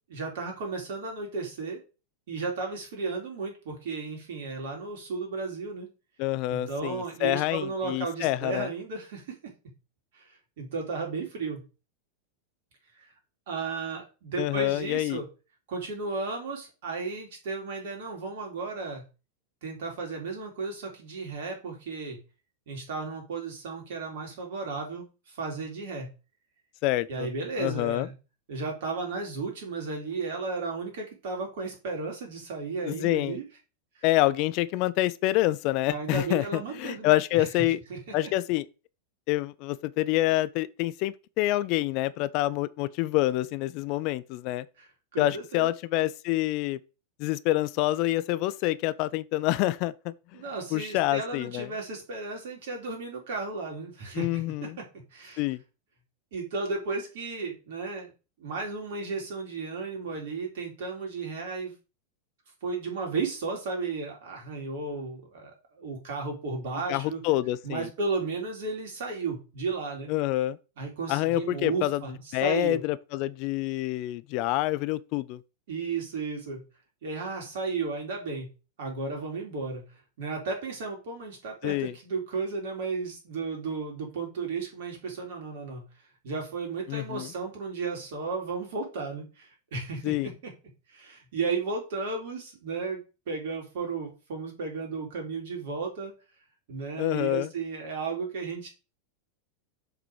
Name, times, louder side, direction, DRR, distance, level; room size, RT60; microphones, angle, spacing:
voice 1, 0.1-1.8 2.3-5.9 6.5-9.5 10.1-10.3 10.6-11.6 13.0-13.1 13.5-15.3 15.7-19.0 19.6-22.2 22.7-26.1 27.1-28.1 28.5-33.4 35.9-37.5 37.9-38.3 44.8-45.7 50.3-54.9 55.1-55.4 56.3-58.1 58.4-61.7 62.6-67.2 67.6-70.1 70.8-72.8 75.7-76.6 77.0-78.5 78.8-79.8 80.2-85.8 86.2-90.5 90.9-93.0 93.3-96.1 96.7-98.7, right 4 dB, 55° right, 3.9 m, -34 dB
voice 2, 6.2-8.7 14.4-15.2 26.8-27.3 27.6-28.1 32.8-33.4 34.0-37.8 38.1-38.6 39.3-44.7 45.2-46.8 47.2-50.1 50.7-51.7 54.1-54.8 55.4-55.6 66.9-67.9 70.1-70.6 71.1-72.0 72.3-75.4 81.6-81.9 86.9-87.3 90.0-90.3 97.0-97.5, left 16 dB, 45° left, 0.4 m, -27 dB
7.2 x 6.0 x 4.8 m
figure-of-eight pair, 90°, 0 cm